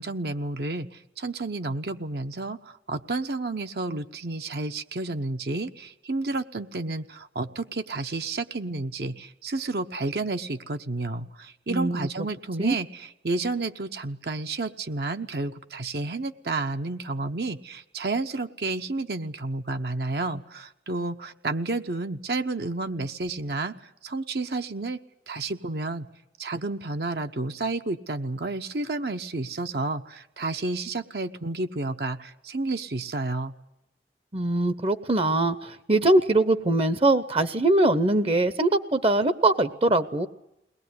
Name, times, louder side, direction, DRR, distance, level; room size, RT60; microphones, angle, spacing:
voice 1, 0.0-25.0 25.3-26.1 26.4-33.5, right 2 dB, 65° right, 7 dB, 0.9 m, -31 dB
voice 2, 11.7-12.1 12.6-12.8 34.3-40.3, right 2 dB, 30° right, 13 dB, 0.8 m, -22 dB
22.0 x 19.0 x 9.6 m, 0.88 s
head